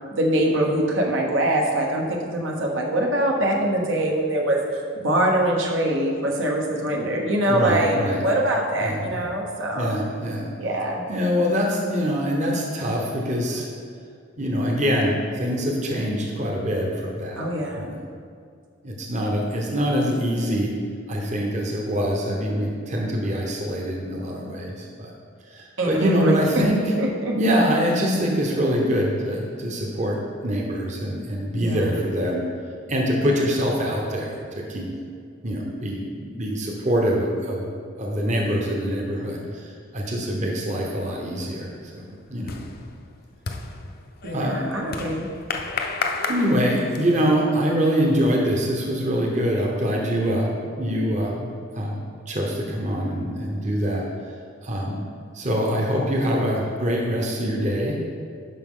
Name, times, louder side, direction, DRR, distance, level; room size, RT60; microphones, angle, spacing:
voice 1, 0.1-10.0 10.6-11.0 17.4-17.9 25.8-26.6 27.0-27.4 31.5-32.0 44.2-45.3, right 1 dB, 75° right, 0 dB, 1.2 m, -23 dB
voice 2, 7.5-8.2 8.8-9.0 9.7-10.5 11.1-13.7 14.4-17.4 17.8-17.9 18.8-20.7 21.1-25.1 25.5-26.8 27.4-32.4 32.9-34.9 35.4-37.7 38.0-42.5 44.3-44.6 46.3-52.0 52.3-54.0 54.6-55.0 55.3-58.0, equal, 35° right, -1 dB, 0.9 m, -24 dB
sound 1, 41.5-47.3, left 4 dB, 50° left, 0.6 m, -32 dB
11.5 x 5.2 x 3.8 m, 2.3 s
head